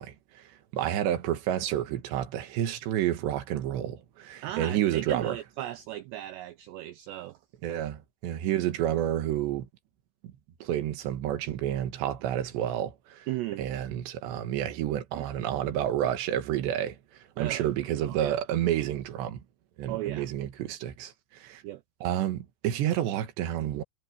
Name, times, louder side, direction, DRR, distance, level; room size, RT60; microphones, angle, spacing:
voice 1, 0.0-5.4 7.6-9.7 10.6-13.3 13.6-19.4 19.8-21.6 22.0-23.8, right 11 dB, 70° right, 3.4 m, -30 dB
voice 2, 4.4-7.4 13.3-13.6 15.1-15.3 17.4-17.7 18.0-18.4 19.9-20.3 21.6-21.8, right 15 dB, 85° right, 2.5 m, -36 dB
omnidirectional pair, 5.8 m